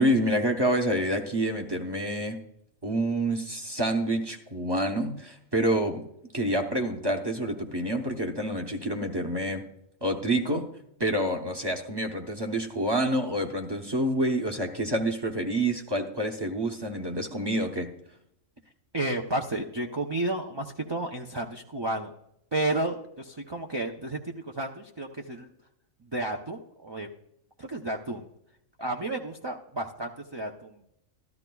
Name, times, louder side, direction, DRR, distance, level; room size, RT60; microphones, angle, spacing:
voice 1, 0.0-2.4 2.8-6.0 6.3-9.6 10.0-10.7 11.0-17.9, right 1 dB, 25° right, 3 dB, 0.7 m, -27 dB
voice 2, 18.9-22.1 22.5-25.5 26.0-27.1 27.6-28.3 28.8-30.8, right 2 dB, 45° right, 1 dB, 0.3 m, -32 dB
13.0 x 13.0 x 2.3 m, 0.79 s
omnidirectional pair, 1.4 m